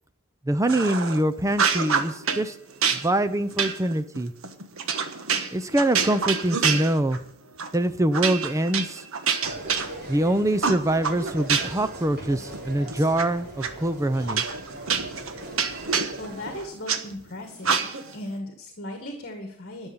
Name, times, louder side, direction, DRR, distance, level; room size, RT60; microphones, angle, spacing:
voice 1, 0.5-2.6 3.0-4.3 5.5-7.2 7.7-9.0 10.1-14.4, right 1 dB, 15° right, 12 dB, 0.6 m, -24 dB
sound 1, 0.7-1.2 1.5-2.4 2.8-7.3 7.6-7.8 8.1-10.2 10.6-11.9 12.3-13.2 13.6-13.7 14.3-17.0 17.6-18.2, right 6 dB, 70° right, 1.4 m, -27 dB
sound 2, 9.4-16.6, right 1 dB, 45° right, 4.6 m, -40 dB
voice 2, 15.9-17.8 18.1-19.9, left 1 dB, 50° left, 4 dB, 1.9 m, -37 dB
12.5 x 7.2 x 9.8 m, 0.75 s
head